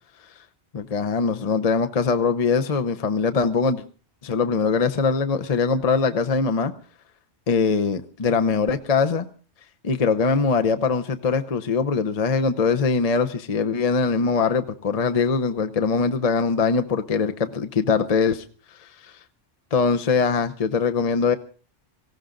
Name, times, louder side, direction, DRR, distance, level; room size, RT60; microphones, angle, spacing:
voice 1, 0.7-3.8 4.2-6.7 7.5-9.3 9.8-18.4 19.7-21.4, left 5 dB, 40° left, 8 dB, 0.9 m, -22 dB
18.5 x 16.5 x 3.9 m, 0.38 s
omnidirectional pair, 1.1 m